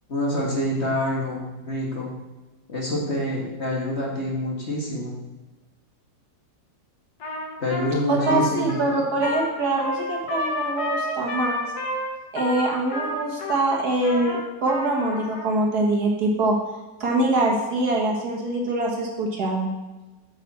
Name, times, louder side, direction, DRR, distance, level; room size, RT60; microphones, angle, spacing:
voice 1, 0.1-2.1 2.7-5.1 7.6-8.8, left 1 dB, 40° left, -2 dB, 1.9 m, -26 dB
Trumpet, 7.2-15.5, left 1 dB, 60° left, 1.7 m, -31 dB
voice 2, 8.1-11.6 12.3-16.6 17.0-19.7, right 2 dB, 55° right, -1 dB, 2.0 m, -24 dB
9.1 x 7.2 x 4.2 m, 1.1 s
omnidirectional pair, 2.0 m